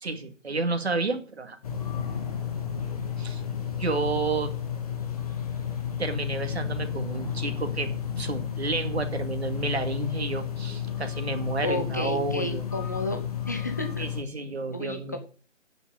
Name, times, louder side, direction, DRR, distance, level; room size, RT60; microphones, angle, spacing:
voice 1, 0.0-1.6 3.2-3.4 3.8-4.5 6.0-7.9 8.2-12.6 14.0-15.2, right 3 dB, 55° right, 7 dB, 2.3 m, -30 dB
sound 1, 1.6-14.2, left 8 dB, 30° left, 1.8 m, -32 dB
voice 2, 11.6-14.1 14.7-15.2, left 1 dB, 15° left, 6 dB, 0.9 m, -32 dB
9.8 x 7.2 x 9.1 m, 0.39 s
figure-of-eight pair, 165°, 38 cm